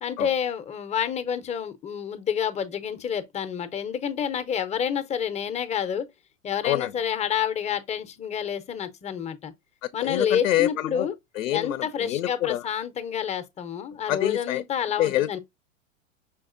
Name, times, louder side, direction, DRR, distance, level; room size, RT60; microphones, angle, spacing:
voice 1, 0.0-6.1 6.4-9.5 9.9-11.1 11.5-15.4, left 8 dB, 15° left, 0.6 m, -28 dB
voice 2, 10.0-11.1 11.4-12.6 14.1-14.6 15.0-15.4, left 13 dB, 80° left, 0.6 m, -26 dB
5.8 x 3.5 x 2.4 m
hypercardioid pair, 110°, 40 cm